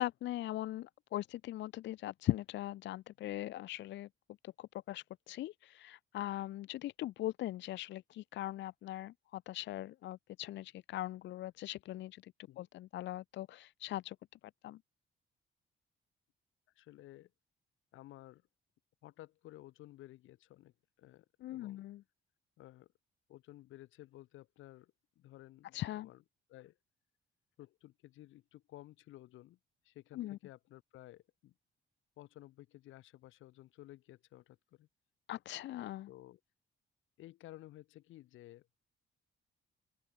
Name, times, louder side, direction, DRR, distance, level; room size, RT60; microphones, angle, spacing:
voice 1, 0.0-4.1 4.4-14.2 14.6-14.8 21.4-22.0 25.7-26.1 30.1-30.4 35.3-36.1, left 14 dB, 65° left, 0.4 m, -40 dB
voice 2, 16.7-17.3 17.9-18.4 19.0-21.8 22.6-22.9 23.3-26.2 26.5-26.8 27.6-29.6 29.8-31.5 32.2-34.9 36.1-36.4 37.2-38.7, left 15 dB, 85° left, 1.3 m, -55 dB
open air
cardioid pair, 90°, 20 cm